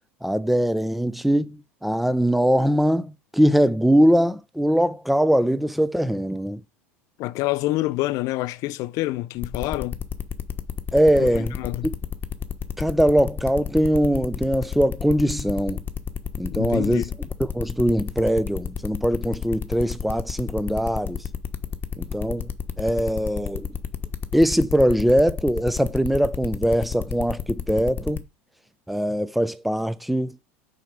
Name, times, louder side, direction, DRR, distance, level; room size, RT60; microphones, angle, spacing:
voice 1, 0.2-6.6 10.9-11.6 12.8-15.8 16.4-17.0 17.4-21.2 22.0-22.5 22.8-23.7 24.3-28.2 28.9-30.4, equal, ahead, 0.6 m, -21 dB
voice 2, 7.2-10.0 11.2-11.9 16.5-17.1, left 18 dB, 55° left, 0.5 m, -27 dB
sound 1, 9.4-28.2, left 7 dB, 25° left, 1.1 m, -30 dB
6.3 x 4.6 x 5.1 m
hypercardioid pair, 85°, 7 cm